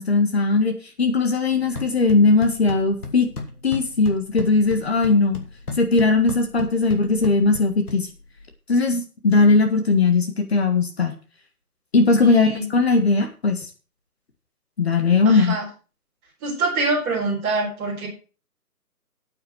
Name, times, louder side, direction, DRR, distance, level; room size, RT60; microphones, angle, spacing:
voice 1, 0.0-3.3 3.6-5.4 5.8-8.1 8.7-11.1 11.9-13.7 14.8-15.6, left 3 dB, 40° left, 5 dB, 1.8 m, -19 dB
sound 1, 1.5-8.5, left 3 dB, 70° left, 2.9 m, -36 dB
voice 2, 12.2-12.6 15.2-15.6 16.4-18.1, right 3 dB, 15° right, -6 dB, 4.6 m, -25 dB
8.9 x 7.9 x 6.3 m, 0.35 s
figure-of-eight pair, 165°, 46 cm